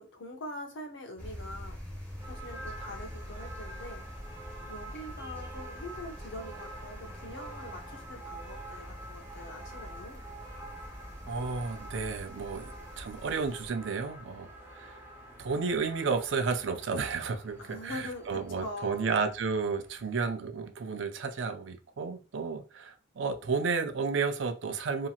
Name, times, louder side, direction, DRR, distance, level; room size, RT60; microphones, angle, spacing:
voice 1, 0.0-1.8 2.3-4.1 4.7-10.2 17.6-19.1, left 1 dB, 75° left, 0.7 m, -43 dB
sound 1, 1.2-13.7, equal, 10° left, 1.2 m, -45 dB
sound 2, 2.2-20.4, right 1 dB, 15° right, 0.8 m, -48 dB
voice 2, 11.3-12.7 13.0-15.0 15.4-25.1, right 4 dB, 70° right, 0.5 m, -32 dB
2.9 x 2.7 x 2.4 m
head